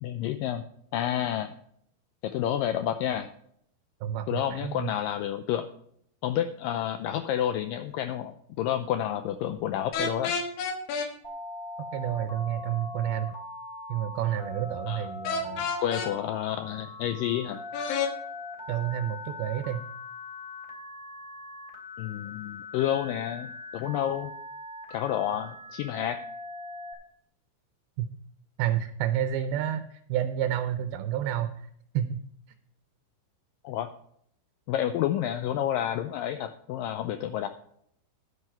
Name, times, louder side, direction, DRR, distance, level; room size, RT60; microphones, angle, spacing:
voice 1, 0.0-0.6 0.9-1.5 2.2-3.3 4.3-5.7 6.2-10.4 14.9-15.1 15.8-17.6 22.0-24.3 24.9-26.2 33.6-33.9 34.7-37.5, left 11 dB, 85° left, 9 dB, 2.0 m, -29 dB
voice 2, 4.0-4.9 11.9-13.3 13.9-15.7 18.7-19.8 28.0-28.1 28.6-31.7 31.9-32.2, right 10 dB, 80° right, 8 dB, 2.5 m, -30 dB
sound 1, 9.9-11.1 15.2-16.1 17.7-18.1, left 5 dB, 70° left, 3.0 m, -29 dB
Telephone, 11.2-26.9, left 2 dB, 10° left, 2.5 m, -41 dB
10.5 x 9.6 x 4.4 m, 0.69 s
omnidirectional pair, 4.5 m